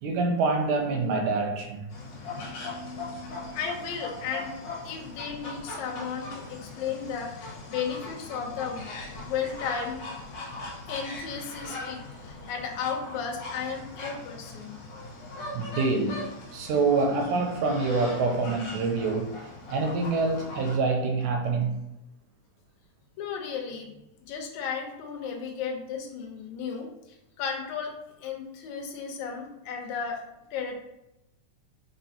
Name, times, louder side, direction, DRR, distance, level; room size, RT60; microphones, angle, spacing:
voice 1, 0.0-1.9 15.5-19.4 19.7-21.8, right 3 dB, 85° right, 3 dB, 2.1 m, -26 dB
sound 1, 1.9-20.7, left 2 dB, 60° left, 1.8 m, -40 dB
voice 2, 3.5-4.5 4.8-8.9 9.3-10.0 10.9-14.8 23.2-27.9 28.2-30.2 30.5-30.8, left 6 dB, 75° left, 2 dB, 2.0 m, -34 dB
4.4 x 4.1 x 2.8 m, 0.89 s
omnidirectional pair, 3.6 m